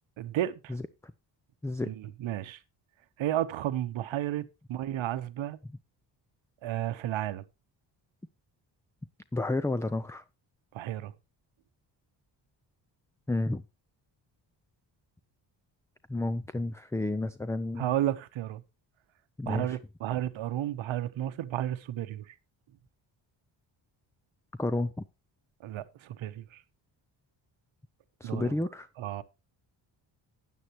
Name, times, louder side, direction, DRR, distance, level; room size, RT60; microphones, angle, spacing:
voice 1, 0.2-0.8 1.8-2.6 3.2-5.6 6.6-7.4 10.7-11.1 17.8-18.6 19.5-22.3 25.6-26.6 28.2-28.5 29.0-29.2, right 12 dB, 80° right, 1.0 m, -32 dB
voice 2, 0.7-1.1 1.6-1.9 9.3-10.2 13.3-13.6 16.1-17.9 19.4-19.8 24.6-25.0 28.2-28.9, left 2 dB, 5° left, 0.5 m, -31 dB
12.5 x 8.9 x 3.0 m
cardioid pair, 80°, 46 cm